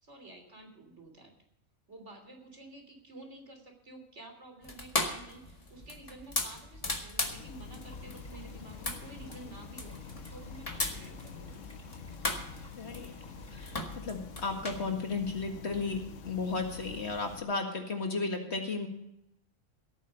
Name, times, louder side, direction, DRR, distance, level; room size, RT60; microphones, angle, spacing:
voice 1, 0.0-1.3 1.9-11.6, right 2 dB, 60° right, 4 dB, 3.6 m, -50 dB
sound 1, 4.6-14.8, left 2 dB, 25° left, 1.8 m, -38 dB
sound 2, 7.2-17.4, left 7 dB, 70° left, 1.1 m, -47 dB
sound 3, 7.8-13.7, equal, 5° left, 4.4 m, -55 dB
voice 2, 12.8-13.1 13.5-18.9, left 4 dB, 55° left, 4 dB, 2.1 m, -34 dB
17.0 x 9.3 x 5.2 m, 0.81 s
omnidirectional pair, 1.4 m